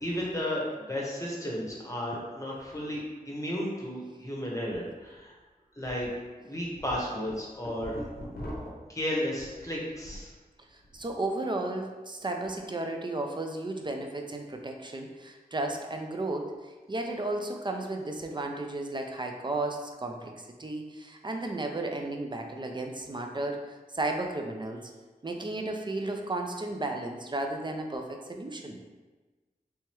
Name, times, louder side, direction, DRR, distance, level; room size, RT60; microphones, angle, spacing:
voice 1, 0.0-5.3 5.8-6.1 6.4-8.0 8.9-10.3, left 1 dB, 20° left, -3 dB, 1.1 m, -33 dB
sound 1, 4.7-4.8 5.2-5.3 5.9-6.1 6.5-10.3 10.7-11.1, equal, 85° left, 0.7 m, -42 dB
voice 2, 10.7-23.6 23.9-24.9 25.2-28.8, right 2 dB, 30° right, 3 dB, 0.5 m, -34 dB
3.4 x 2.9 x 3.0 m, 1.3 s
wide cardioid pair, 50°, 16 cm